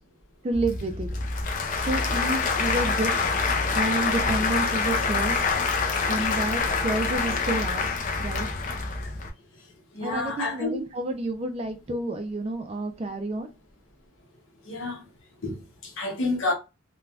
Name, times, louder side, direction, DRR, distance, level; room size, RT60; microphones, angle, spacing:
voice 1, 0.4-1.1 1.7-3.1 3.7-5.4 6.1-8.5 10.0-13.5, right 2 dB, 30° right, 0.3 m, -30 dB
Applause / Crowd, 0.5-9.3, left 4 dB, 40° left, 0.4 m, -26 dB
voice 2, 9.9-10.8 14.7-15.0 15.4-16.5, left 3 dB, 75° left, 0.9 m, -29 dB
3.3 x 2.2 x 2.4 m
head